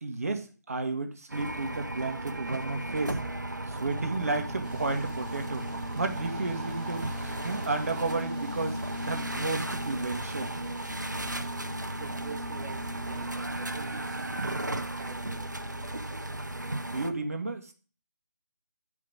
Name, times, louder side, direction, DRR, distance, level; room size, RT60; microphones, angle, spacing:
voice 1, 0.0-3.2 3.7-8.8 9.1-10.6 16.8-17.7, right 3 dB, 55° right, 6 dB, 1.4 m, -32 dB
sound 1, 1.3-17.1, right 1 dB, 80° right, 0.9 m, -35 dB
sound 2, 4.6-14.5, right 2 dB, 30° right, 2.7 m, -52 dB
voice 2, 12.0-15.5, right 5 dB, 10° right, 2 dB, 0.4 m, -46 dB
9.7 x 5.0 x 4.9 m, 0.37 s
figure-of-eight pair, 150°, 10 cm